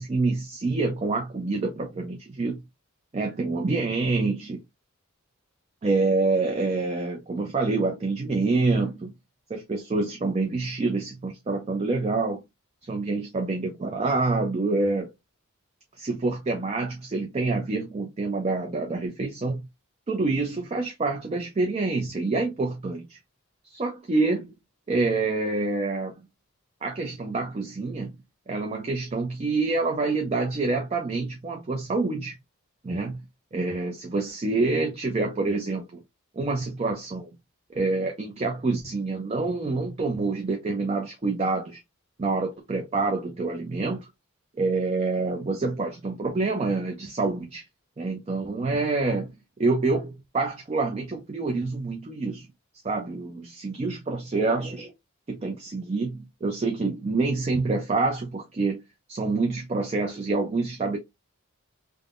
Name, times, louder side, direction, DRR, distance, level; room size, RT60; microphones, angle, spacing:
voice 1, 0.0-2.6 3.1-4.6 5.8-9.1 9.5-12.4 12.8-15.1 16.0-19.7 20.1-23.2 23.6-24.5 24.9-26.1 26.8-28.1 28.5-32.3 32.8-33.2 33.5-35.8 36.4-37.3 37.7-41.8 42.2-44.1 44.6-47.6 48.0-49.3 49.6-52.5 52.8-54.9 55.3-58.8 59.1-61.0, right 3 dB, 30° right, 0.4 m, -27 dB
3.4 x 2.0 x 2.3 m
head